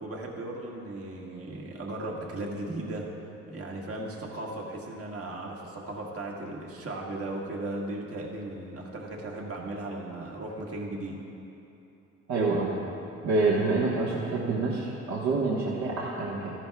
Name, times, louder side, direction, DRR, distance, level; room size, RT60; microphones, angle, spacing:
voice 1, 0.0-3.1 3.5-11.2, right 2 dB, 50° right, -1 dB, 1.6 m, -36 dB
voice 2, 12.3-12.7 13.2-16.5, right 3 dB, 65° right, -6 dB, 1.4 m, -27 dB
14.5 x 10.5 x 2.3 m, 2.9 s
cardioid pair, 90°, 30 cm